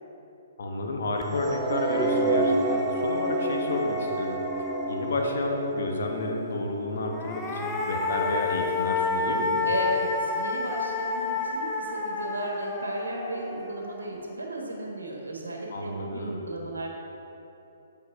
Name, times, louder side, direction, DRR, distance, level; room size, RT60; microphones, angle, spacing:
voice 1, 0.6-4.4 4.9-9.6 15.7-16.5, left 2 dB, 65° left, 1 dB, 1.2 m, -31 dB
sound 1, 1.2-1.3 1.7-5.3 7.0-14.3, left 4 dB, 10° left, 0.7 m, -31 dB
sound 2, 1.3-7.6, right 2 dB, 20° right, 0.5 m, -29 dB
voice 2, 9.6-16.9, right 1 dB, 85° right, 0 dB, 1.4 m, -34 dB
8.0 x 5.3 x 4.7 m, 2.9 s
figure-of-eight pair, 130°, 0 cm